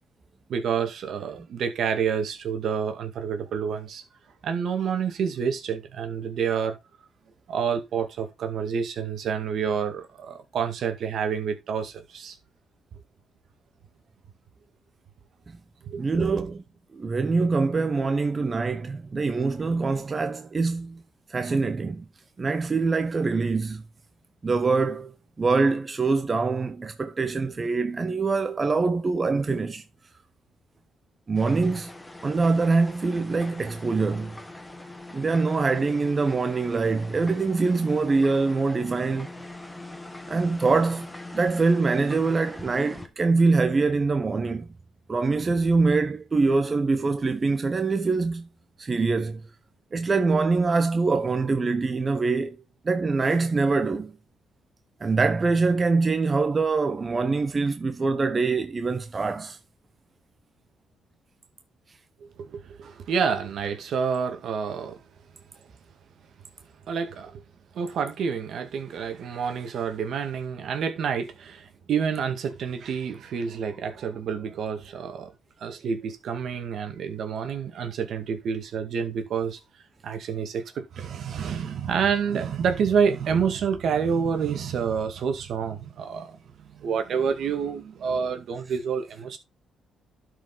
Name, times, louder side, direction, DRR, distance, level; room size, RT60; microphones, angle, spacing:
voice 1, 0.5-4.0 4.4-6.8 7.5-12.4 15.9-16.4 62.4-65.0 66.9-67.4 67.7-75.3 75.6-79.6 80.0-89.4, right 6 dB, 65° right, 2.0 m, -28 dB
voice 2, 16.0-16.6 16.9-21.0 21.3-22.1 22.4-23.8 24.4-29.8 31.3-31.9 32.2-34.4 35.1-39.3 40.3-44.7 45.1-48.5 48.8-49.4 49.9-52.6 52.8-54.2 55.0-59.6, right 4 dB, 30° right, 0.9 m, -24 dB
sound 1, 31.3-43.1, left 2 dB, 10° left, 1.8 m, -42 dB
12.0 x 5.1 x 4.0 m
cardioid pair, 90°, 0 cm